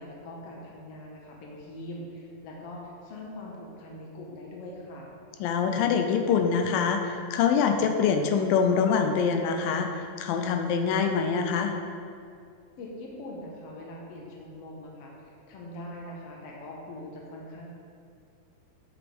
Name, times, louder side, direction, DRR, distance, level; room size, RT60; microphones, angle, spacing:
voice 1, 0.0-5.1 12.8-17.7, left 1 dB, 55° left, -2 dB, 2.0 m, -42 dB
voice 2, 5.4-11.7, left 6 dB, 90° left, 5 dB, 2.4 m, -25 dB
11.0 x 6.7 x 3.5 m, 2.4 s
omnidirectional pair, 3.9 m